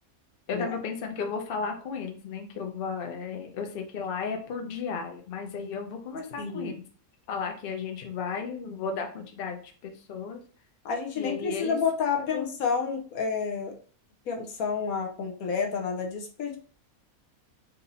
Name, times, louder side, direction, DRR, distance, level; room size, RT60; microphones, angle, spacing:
voice 1, 0.5-6.8 7.3-10.4 11.2-11.8 12.2-12.5, left 5 dB, 50° left, 3 dB, 0.8 m, -34 dB
voice 2, 6.4-6.8 10.8-13.7 14.3-16.6, left 5 dB, 80° left, 3 dB, 1.3 m, -29 dB
4.1 x 2.7 x 4.0 m, 0.42 s
omnidirectional pair, 1.5 m